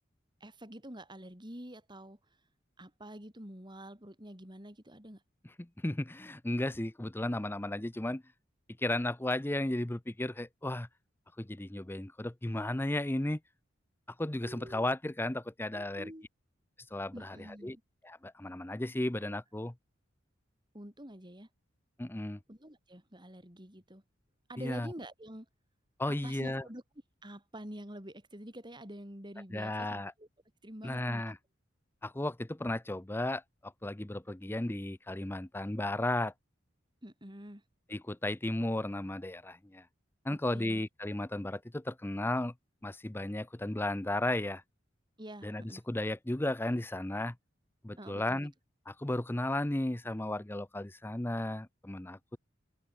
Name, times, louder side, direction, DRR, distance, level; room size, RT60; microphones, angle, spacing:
voice 1, 0.4-2.2 2.8-5.2 14.4-14.9 15.7-16.2 17.1-17.7 20.7-21.5 22.5-24.0 24.5-25.5 26.1-26.8 27.2-30.3 30.6-31.3 37.0-37.6 40.3-40.8 45.2-45.8 48.0-48.5, right 1 dB, 25° right, 7.9 m, -47 dB
voice 2, 5.6-8.2 8.8-10.9 11.4-13.4 14.2-16.1 16.9-17.8 18.0-19.7 22.0-22.4 24.6-24.9 26.0-26.6 29.5-30.1 30.8-31.4 32.0-36.3 37.9-39.8 40.2-42.5 42.8-44.6 45.4-47.4 47.8-48.5 48.9-52.4, left 1 dB, 10° left, 0.6 m, -34 dB
open air
head